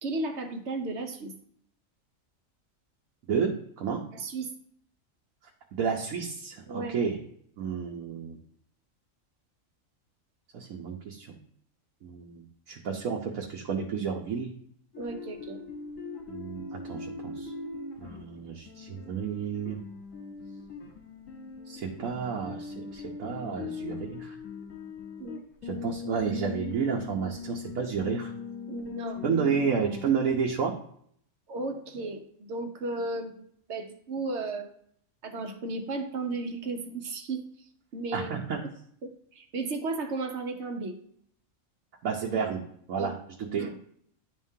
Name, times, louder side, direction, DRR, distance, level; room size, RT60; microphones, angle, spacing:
voice 1, 0.0-1.3 4.1-4.5 6.7-7.0 15.0-15.6 25.2-25.4 28.7-29.2 31.5-34.7 35.2-37.5 37.9-38.4 39.0-40.9 43.0-43.1 43.6-43.8, right 3 dB, 60° right, 6 dB, 1.1 m, -34 dB
voice 2, 3.3-4.0 5.8-7.2 7.6-8.4 10.5-11.4 12.0-14.5 16.3-17.5 18.0-19.8 21.7-24.4 25.6-28.3 29.2-30.7 38.1-38.6 42.0-42.6 42.9-43.1 43.5-43.7, right 6 dB, 85° right, 0 dB, 1.2 m, -31 dB
sound 1, 14.9-30.1, left 5 dB, 75° left, 1.6 m, -40 dB
11.0 x 3.6 x 2.7 m, 0.65 s
omnidirectional pair, 1.4 m